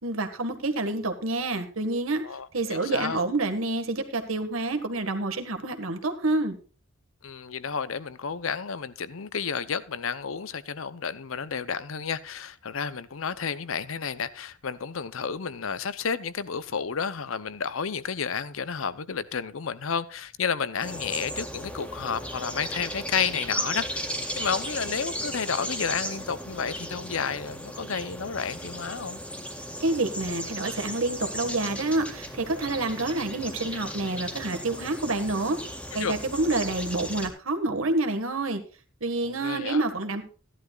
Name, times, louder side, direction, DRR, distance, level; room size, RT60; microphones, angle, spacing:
voice 1, 0.0-2.2 2.5-6.6 29.8-35.6 35.9-38.6 39.0-40.2, right 2 dB, 80° right, 1.7 m, -28 dB
voice 2, 2.2-3.3 7.2-29.2 36.0-36.1 39.2-39.8, left 6 dB, 75° left, 0.7 m, -31 dB
sound 1, 20.8-37.3, equal, 5° left, 1.8 m, -36 dB
15.5 x 11.0 x 2.4 m
head